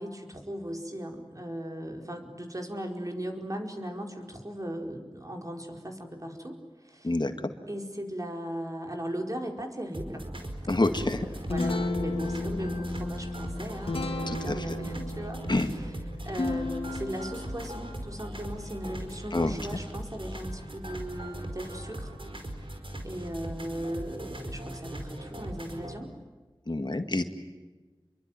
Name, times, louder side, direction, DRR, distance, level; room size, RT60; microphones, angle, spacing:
voice 1, 0.0-7.1 7.7-10.2 10.8-15.9 16.2-22.1 23.0-26.1, equal, 40° right, 2 dB, 4.7 m, -38 dB
voice 2, 7.0-7.5 10.7-11.3 14.3-14.5 15.5-15.7 19.3-19.5 26.7-27.2, left 2 dB, 55° left, 7 dB, 2.0 m, -27 dB
sound 1, 9.9-26.0, right 1 dB, 70° right, 4.9 m, -40 dB
Guitar, 11.1-20.8, left 2 dB, 90° left, 2.5 m, -35 dB
28.0 x 23.5 x 9.2 m, 1.2 s
wide cardioid pair, 40°, 9 cm